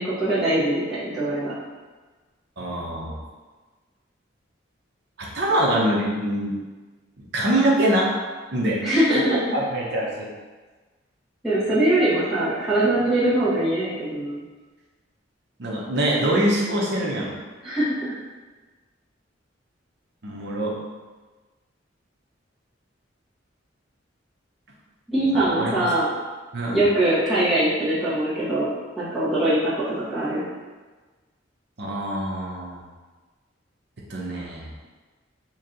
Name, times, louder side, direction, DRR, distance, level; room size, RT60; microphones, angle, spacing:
voice 1, 0.0-1.5 8.8-9.4 11.4-14.4 17.6-18.0 25.1-26.0 26.7-28.7 29.0-30.4, right 1 dB, ahead, -13 dB, 1.3 m, -22 dB
voice 2, 2.6-3.2 5.2-6.6 7.2-8.1 8.5-8.8 9.3-10.3 15.6-17.3 20.2-20.7 25.3-25.9 26.5-26.8 31.8-32.8 34.1-34.7, right 1 dB, 60° right, -3 dB, 0.7 m, -24 dB
3.0 x 2.7 x 3.8 m, 1.3 s
head